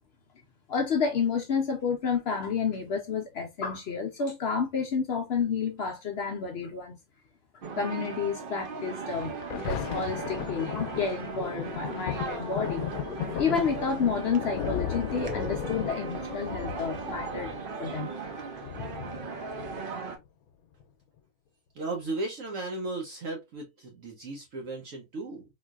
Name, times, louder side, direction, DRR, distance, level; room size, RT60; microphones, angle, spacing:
voice 1, 0.7-7.0 7.7-12.8 13.4-18.1, left 5 dB, 60° left, 0.7 m, -30 dB
sound 1, 7.6-20.2, right 4 dB, 50° right, 0.7 m, -38 dB
Thunder, 9.2-20.2 20.8-20.9, left 8 dB, 80° left, 1.0 m, -36 dB
voice 2, 21.7-25.4, right 2 dB, 65° right, 1.1 m, -35 dB
3.8 x 2.5 x 2.3 m
omnidirectional pair, 1.5 m